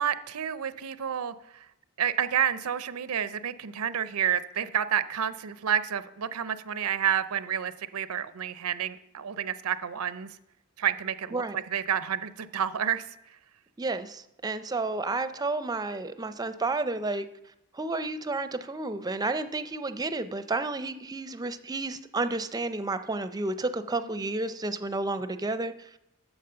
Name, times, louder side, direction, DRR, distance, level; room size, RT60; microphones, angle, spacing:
voice 1, 0.0-1.7 2.0-10.3 10.8-13.0 24.2-24.3, right 9 dB, 85° right, 14 dB, 0.5 m, -29 dB
voice 2, 13.8-17.3 17.7-25.7, right 3 dB, 20° right, 11 dB, 0.4 m, -31 dB
8.8 x 7.3 x 6.7 m, 0.85 s
head